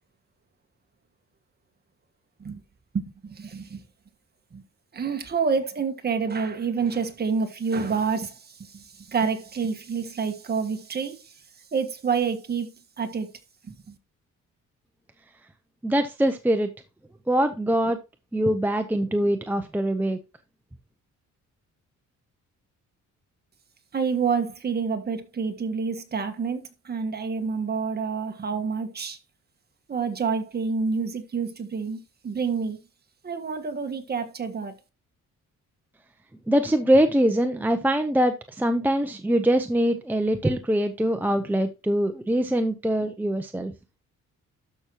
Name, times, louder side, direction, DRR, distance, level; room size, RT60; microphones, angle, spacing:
voice 1, 2.9-3.8 4.5-4.6 4.9-11.3 11.7-13.3 13.6-14.0 23.9-29.2 29.9-32.8 33.2-34.7, right 5 dB, 30° right, 1.5 m, -28 dB
voice 2, 15.8-16.7 17.3-18.0 18.3-20.2 36.5-43.7, right 1 dB, 5° right, 0.7 m, -23 dB
12.5 x 6.1 x 2.9 m
cardioid pair, 135°, 30 cm